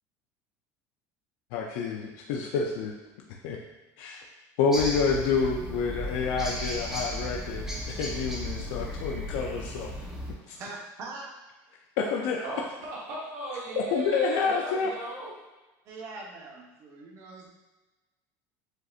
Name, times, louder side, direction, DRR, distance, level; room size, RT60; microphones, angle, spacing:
voice 1, 1.5-2.9 3.4-3.6 4.0-4.2 4.6-9.9 10.5-10.6 12.0-12.4 13.8-14.9, left 5 dB, 70° left, 0 dB, 0.5 m, -28 dB
sound 1, 4.7-10.3, equal, 5° right, 0.8 m, -35 dB
voice 2, 10.5-11.3 15.9-17.5, right 3 dB, 40° right, -1 dB, 0.9 m, -42 dB
voice 3, 13.1-15.3, right 2 dB, 80° right, -6 dB, 1.3 m, -36 dB
7.6 x 2.7 x 2.4 m, 1.1 s
cardioid pair, 160°, 8 cm